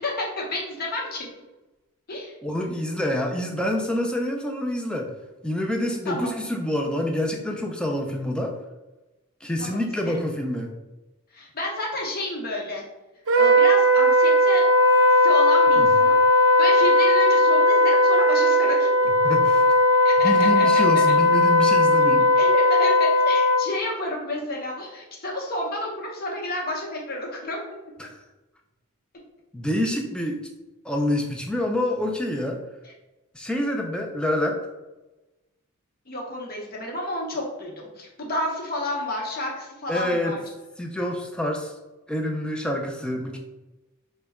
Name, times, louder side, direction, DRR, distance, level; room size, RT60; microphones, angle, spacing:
voice 1, 0.0-1.3 2.1-2.3 6.0-6.3 9.6-10.1 11.3-12.8 13.4-14.7 15.2-16.2 16.6-18.9 20.0-20.6 22.4-27.6 32.8-32.9 36.1-40.4, left 1 dB, 40° left, -1 dB, 0.8 m, -30 dB
voice 2, 2.4-5.1 5.4-8.5 9.4-10.7 15.8-15.9 19.2-19.6 20.2-22.3 28.0-28.2 29.5-30.4 30.8-32.6 33.3-34.6 39.9-40.4 40.8-41.7 42.1-43.4, left 1 dB, 5° left, 1 dB, 0.4 m, -27 dB
Wind instrument woodwind instrument, 13.3-23.7, left 1 dB, 60° right, 0.5 m, -17 dB
3.9 x 2.2 x 3.5 m, 1.1 s
head